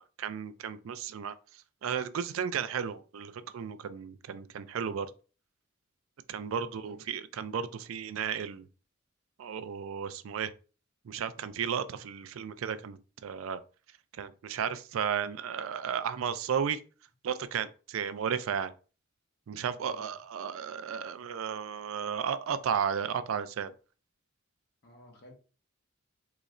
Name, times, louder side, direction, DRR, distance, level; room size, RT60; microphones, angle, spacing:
voice 1, 0.0-1.3 1.8-5.1 6.3-8.7 9.4-10.5 11.1-13.6 14.2-16.8 17.2-18.7 19.5-23.7, right 7 dB, 80° right, 0.4 m, -34 dB
voice 2, 6.5-7.0 19.8-20.1 24.8-25.3, left 1 dB, 55° left, 1.0 m, -54 dB
4.0 x 3.0 x 2.5 m
head